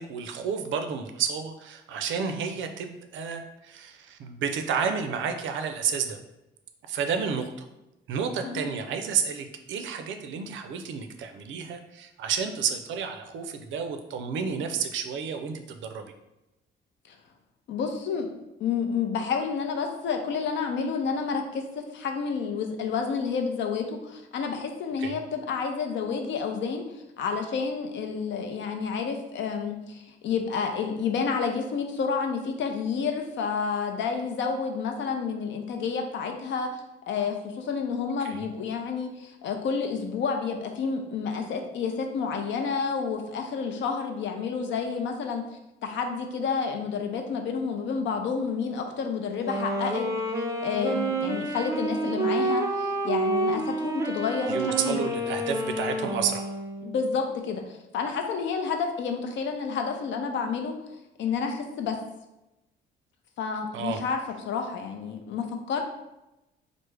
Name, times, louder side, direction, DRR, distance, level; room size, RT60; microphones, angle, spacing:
voice 1, 0.0-6.2 6.9-7.7 8.1-16.1 25.0-25.2 38.2-38.5 54.5-56.5 63.7-64.0, right 6 dB, 75° right, 6 dB, 0.4 m, -31 dB
voice 2, 17.7-18.3 18.6-26.8 27.2-36.7 37.1-45.5 45.8-50.1 50.6-55.0 56.8-60.7 61.2-62.0 63.4-64.2 64.4-65.8, left 5 dB, 70° left, 4 dB, 0.5 m, -30 dB
Wind instrument woodwind instrument, 49.3-57.0, right 2 dB, 15° right, 0.4 m, -29 dB
3.3 x 2.0 x 3.2 m, 0.95 s
cardioid pair, 90°, 20 cm